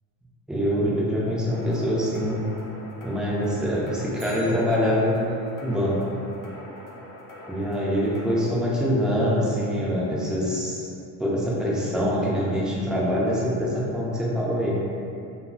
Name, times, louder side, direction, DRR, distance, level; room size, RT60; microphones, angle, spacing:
voice 1, 0.5-2.4 3.0-5.3 5.6-6.0 7.5-10.9 11.2-14.8, equal, ahead, -7 dB, 0.3 m, -24 dB
sound 1, 1.5-8.4, left 1 dB, 60° left, 0.5 m, -43 dB
Bicycle, 4.1-5.5 13.8-13.9, right 1 dB, 60° right, 0.8 m, -48 dB
2.5 x 2.0 x 2.5 m, 2.6 s
cardioid pair, 115°, 36 cm